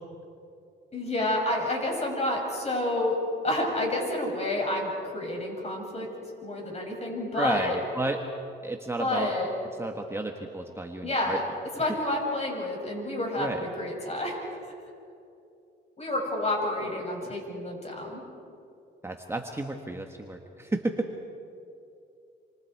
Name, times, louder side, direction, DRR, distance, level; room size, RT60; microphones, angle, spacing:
voice 1, 0.9-3.2 3.4-6.1 6.4-7.8 9.0-9.5 11.0-11.4 11.8-14.4 16.0-18.2, left 1 dB, 30° left, 0 dB, 7.5 m, -29 dB
voice 2, 7.3-8.2 8.6-9.3 9.8-11.4 13.3-13.6 17.2-17.4 19.0-21.1, right 2 dB, 15° right, 3 dB, 1.5 m, -32 dB
28.0 x 26.5 x 4.8 m, 2.7 s
cardioid pair, 90°, 20 cm